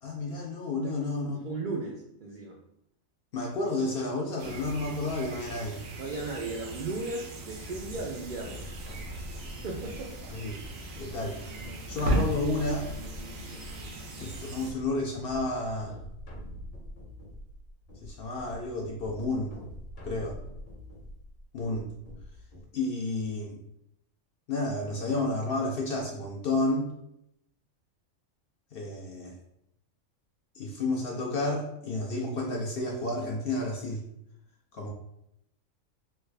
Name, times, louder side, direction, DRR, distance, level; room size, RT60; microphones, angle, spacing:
voice 1, 0.0-1.4 3.3-5.8 10.3-11.5 11.9-12.9 14.2-16.0 18.0-19.5 20.0-20.4 21.5-21.9 22.7-23.6 24.5-26.9 28.7-29.3 30.5-34.0 34.7-34.9, left 2 dB, 60° left, -1 dB, 0.6 m, -31 dB
voice 2, 1.4-2.6 6.0-8.7 9.6-10.1 11.9-12.1, right 3 dB, 70° right, -1 dB, 0.4 m, -36 dB
sound 1, 4.4-14.7, right 1 dB, 85° right, 1.1 m, -37 dB
sound 2, 7.5-22.6, equal, 40° left, 1.0 m, -45 dB
3.3 x 2.3 x 3.2 m, 0.78 s
omnidirectional pair, 1.4 m